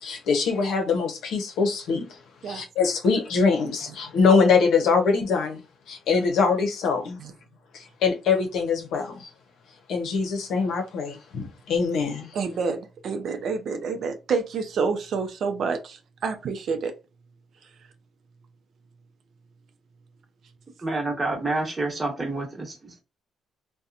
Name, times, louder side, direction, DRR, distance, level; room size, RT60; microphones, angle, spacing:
voice 1, 0.0-2.2 2.5-5.6 5.9-7.2 7.7-9.3 9.9-12.3, left 5 dB, 80° left, 0.7 m, -23 dB
voice 2, 12.3-16.9 17.6-17.7, right 5 dB, 65° right, 0.5 m, -28 dB
voice 3, 20.8-23.0, right 2 dB, 25° right, 1.1 m, -28 dB
2.8 x 2.1 x 2.4 m
cardioid pair, 90°, 0 cm